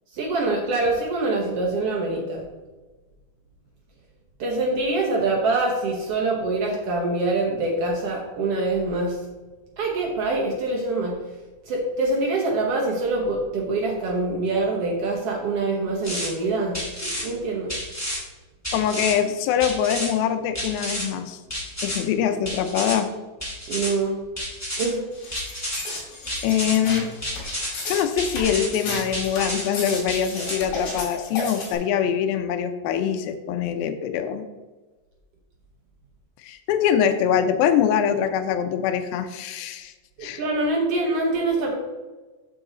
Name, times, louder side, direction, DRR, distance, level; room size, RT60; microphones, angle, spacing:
voice 1, 0.1-2.4 4.4-9.2 9.8-11.2 11.7-16.8 17.2-17.7 23.7-24.2 24.8-25.0 40.2-41.7, right 2 dB, 75° right, -1 dB, 1.4 m, -24 dB
sound 1, 16.0-16.3 16.7-17.2 17.7-18.2 18.6-19.1 19.6-20.1 20.5-21.0 21.5-22.0 22.4-23.0 23.4-23.9 24.4-24.9 25.3-25.8 26.3-26.7 27.2-27.7 28.2-28.7 29.1-29.6 30.1-30.6, equal, 5° left, 1.4 m, -30 dB
voice 2, 18.7-21.4 21.8-23.2 26.4-27.1 27.8-34.5 36.4-39.9 40.2-40.4, left 8 dB, 90° left, 9 dB, 2.5 m, -23 dB
sound 2, 25.1-31.8, left 2 dB, 70° left, 3.8 m, -33 dB
7.4 x 6.4 x 3.9 m, 1.2 s
omnidirectional pair, 4.1 m